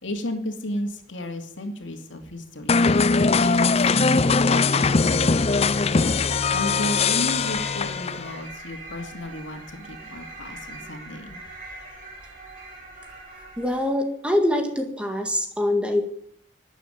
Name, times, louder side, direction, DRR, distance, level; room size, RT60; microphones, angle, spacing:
voice 1, 0.0-2.8 3.4-5.9 6.5-11.4, left 1 dB, 75° left, 5 dB, 2.6 m, -33 dB
sound 1, 2.7-8.4, left 4 dB, 30° left, 0.5 m, -21 dB
sound 2, 5.4-14.0, right 2 dB, 45° right, 4.9 m, -42 dB
voice 2, 13.6-16.0, left 1 dB, 5° right, 4 dB, 2.0 m, -24 dB
12.5 x 10.0 x 9.4 m, 0.62 s
head